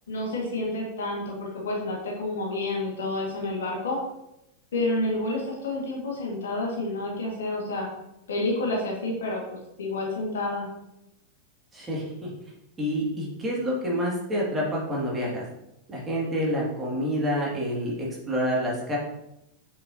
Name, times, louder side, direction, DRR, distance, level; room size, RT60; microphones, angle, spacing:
voice 1, 0.1-4.0 4.7-7.9 8.3-10.7, left 2 dB, 65° left, -2 dB, 1.9 m, -29 dB
voice 2, 11.7-12.3 12.8-15.4 15.9-19.0, equal, 15° right, -4 dB, 2.3 m, -28 dB
7.9 x 5.0 x 2.8 m, 0.85 s
figure-of-eight pair, 90°, 0 cm